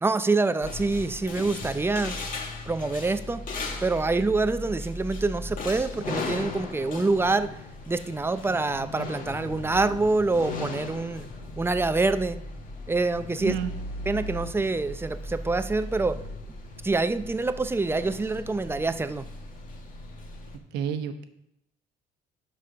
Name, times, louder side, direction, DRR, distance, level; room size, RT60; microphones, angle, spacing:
voice 1, 0.0-2.2 2.7-3.4 3.8-7.5 7.9-11.3 11.6-12.4 12.9-13.6 14.1-16.2 16.8-19.3, right 3 dB, 15° right, 11 dB, 0.5 m, -26 dB
sound 1, 0.6-20.6, left 2 dB, 55° left, 1.6 m, -37 dB
voice 2, 13.4-13.7 20.7-21.2, right 9 dB, 90° right, 8 dB, 1.0 m, -29 dB
7.7 x 5.6 x 6.4 m, 0.82 s
cardioid pair, 110°, 17 cm